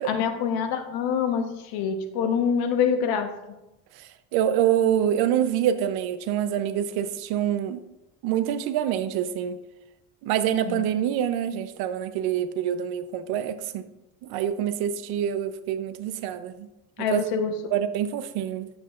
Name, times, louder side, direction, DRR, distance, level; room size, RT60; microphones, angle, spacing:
voice 1, 0.0-3.3 10.7-10.8 17.0-17.6, left 7 dB, 75° left, 1.1 m, -25 dB
voice 2, 4.0-7.8 8.2-9.6 10.2-13.9 14.2-16.7 17.0-17.2 17.7-18.7, right 10 dB, 85° right, 0.7 m, -26 dB
10.5 x 7.6 x 2.5 m
cardioid pair, 140°, 37 cm